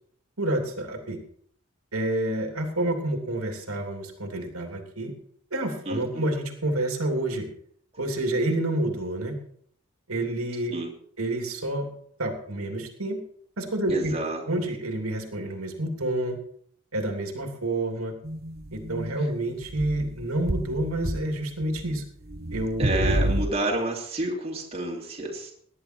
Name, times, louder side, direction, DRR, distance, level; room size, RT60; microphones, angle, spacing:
voice 1, 0.4-1.2 1.9-5.1 5.5-7.5 8.0-9.4 10.1-10.7 11.2-11.9 12.2-13.2 13.6-14.1 14.5-16.4 16.9-18.1 18.7-22.0 22.5-22.8, right 1 dB, 85° right, 3 dB, 3.0 m, -28 dB
voice 2, 5.8-6.3 10.7-10.9 13.9-14.4 19.2-19.3 22.8-25.5, right 1 dB, 30° right, -2 dB, 3.2 m, -29 dB
sound 1, 18.2-19.3 19.6-21.3 21.6-21.9 22.2-23.5, right 1 dB, 45° right, 1.2 m, -29 dB
18.5 x 11.0 x 4.5 m, 0.63 s
head